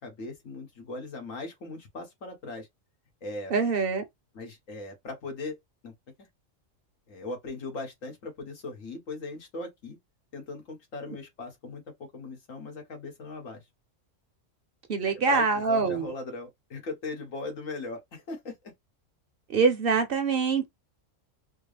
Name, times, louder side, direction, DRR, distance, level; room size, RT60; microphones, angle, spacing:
voice 1, 0.0-2.7 3.2-3.5 4.3-5.5 5.8-5.9 7.1-10.0 10.3-13.6 15.0-18.7, left 3 dB, 90° left, 1.8 m, -39 dB
voice 2, 3.5-4.0 14.9-16.1 19.5-20.7, right 5 dB, 55° right, 0.8 m, -24 dB
4.5 x 2.0 x 3.2 m
omnidirectional pair, 1.3 m